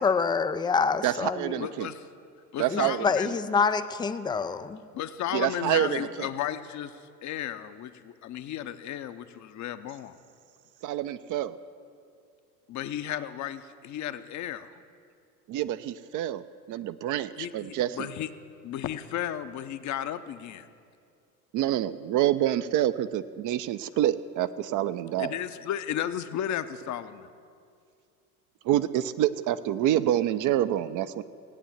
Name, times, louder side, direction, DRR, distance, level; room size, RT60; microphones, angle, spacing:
voice 1, 0.0-1.6 2.7-4.9, left 5 dB, 10° left, 11 dB, 0.3 m, -26 dB
voice 2, 1.0-1.9 2.6-3.0 5.3-6.3 10.8-11.6 15.5-18.1 21.5-25.3 28.6-31.2, right 12 dB, 40° right, 13 dB, 0.7 m, -27 dB
voice 3, 1.6-2.1 2.5-3.3 4.9-10.2 12.7-14.7 17.4-18.3 18.6-20.7 25.2-27.3, left 11 dB, 40° left, 11 dB, 0.8 m, -34 dB
16.5 x 9.0 x 7.3 m, 2.3 s
hypercardioid pair, 75°, 46 cm